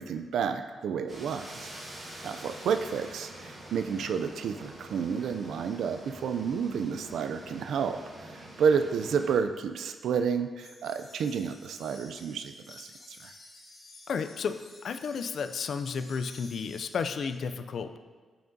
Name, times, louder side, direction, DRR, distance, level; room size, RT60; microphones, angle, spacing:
voice 1, 0.0-1.7 2.2-13.3, right 6 dB, 80° right, 8 dB, 0.3 m, -30 dB
sound 1, 1.1-9.3, right 1 dB, 30° right, 1.4 m, -46 dB
sound 2, 10.6-17.4, left 2 dB, 40° left, 1.0 m, -53 dB
voice 2, 14.1-18.0, left 5 dB, 55° left, 10 dB, 0.3 m, -33 dB
8.7 x 5.9 x 2.7 m, 1.4 s
wide cardioid pair, 170°, 0 cm